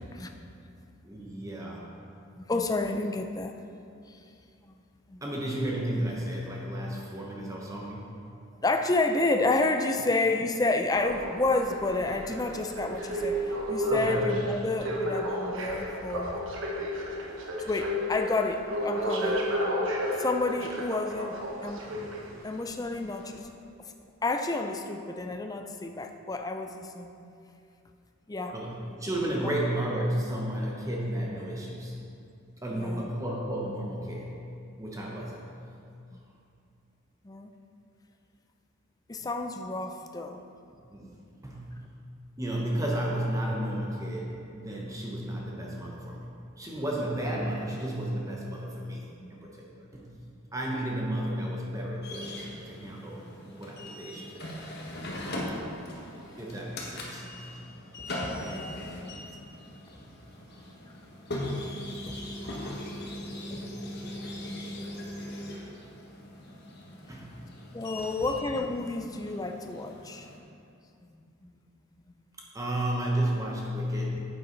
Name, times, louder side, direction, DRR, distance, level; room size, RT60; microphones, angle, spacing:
voice 1, 1.0-1.9 5.2-8.1 13.9-14.2 28.5-32.0 32.6-34.4 34.8-35.4 40.9-41.1 41.4-41.9 42.4-50.2 50.5-53.2 53.5-54.7 56.4-57.7 59.0-59.1 59.9-60.0 63.5-63.7 67.1-67.4 68.0-68.1 72.5-74.3, right 1 dB, 15° right, -3 dB, 0.9 m, -33 dB
voice 2, 2.4-3.5 4.1-4.2 5.1-5.2 8.6-16.4 17.7-21.4 21.6-21.8 22.4-23.4 24.2-27.3 28.3-28.5 29.4-29.5 32.7-33.1 37.2-37.5 39.1-40.4 41.0-41.1 49.1-49.3 54.1-54.2 57.3-57.4 58.4-59.2 62.1-62.2 62.9-63.0 63.4-63.9 64.5-64.7 66.6-66.7 67.7-70.3 71.4-71.5, left 2 dB, 15° left, 5 dB, 0.4 m, -30 dB
sound 1, 10.9-22.5 23.2-23.3, equal, 60° right, 1.1 m, -32 dB
sound 2, 52.0-70.4, left 1 dB, 50° left, 1.3 m, -40 dB
9.6 x 8.2 x 3.9 m, 2.5 s
head